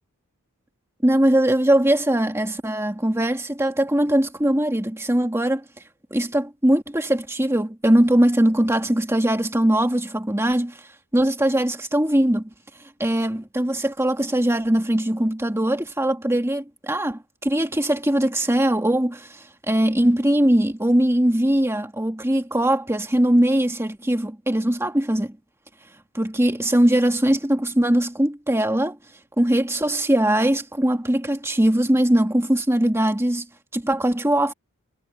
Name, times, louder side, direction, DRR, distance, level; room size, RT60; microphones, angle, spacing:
voice 1, 1.0-5.6 6.1-10.9 11.1-12.5 13.0-25.3 26.1-29.0 29.4-33.5 33.7-34.5, right 1 dB, 10° right, 2.0 m, -21 dB
head